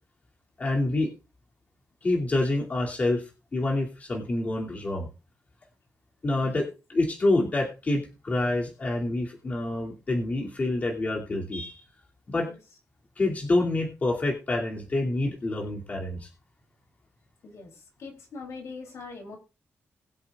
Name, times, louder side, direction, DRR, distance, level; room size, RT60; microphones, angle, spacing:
voice 1, 0.6-1.1 2.0-3.2 3.5-5.1 6.2-11.7 12.3-12.5 13.2-16.3, left 2 dB, 30° left, -1 dB, 2.7 m, -27 dB
voice 2, 17.4-19.4, left 4 dB, 70° left, 3 dB, 3.2 m, -42 dB
21.5 x 7.7 x 2.4 m, 0.30 s
wide cardioid pair, 155°, 5 cm